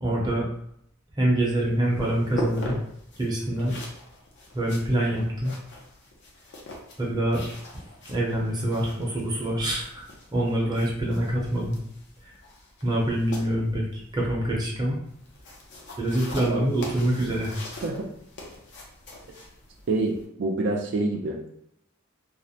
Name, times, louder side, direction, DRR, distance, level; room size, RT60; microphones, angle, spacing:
voice 1, 0.0-0.5 1.2-2.8 3.2-3.8 4.5-5.6 7.0-7.4 8.1-10.0 10.3-11.8 12.2-12.3 12.8-15.0 16.0-17.6, right 1 dB, 20° right, -3 dB, 0.6 m, -25 dB
sound 1, 1.4-20.2, left 1 dB, 60° left, 0.6 m, -42 dB
voice 2, 19.9-21.4, right 2 dB, 60° right, 1 dB, 0.4 m, -26 dB
2.4 x 2.0 x 2.7 m, 0.73 s
head